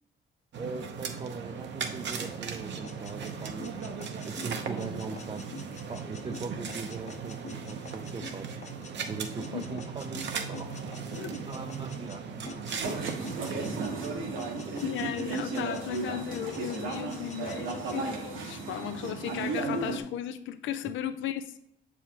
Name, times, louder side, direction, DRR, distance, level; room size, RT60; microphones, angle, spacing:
sound 1, 0.5-13.8, right 6 dB, 65° right, 0.8 m, -38 dB
voice 1, 0.6-3.8 4.2-5.5 5.9-8.5 8.8-14.9 20.8-20.9, right 4 dB, 25° right, 0.5 m, -41 dB
sound 2, 2.8-12.2 12.5-14.1 14.4-16.0 16.3-18.0, left 4 dB, 35° left, 0.6 m, -47 dB
sound 3, 12.8-20.0, right 3 dB, 80° right, 1.2 m, -34 dB
voice 2, 14.8-21.6, left 10 dB, 75° left, 0.5 m, -35 dB
6.9 x 4.9 x 2.9 m
cardioid pair, 90°, 20 cm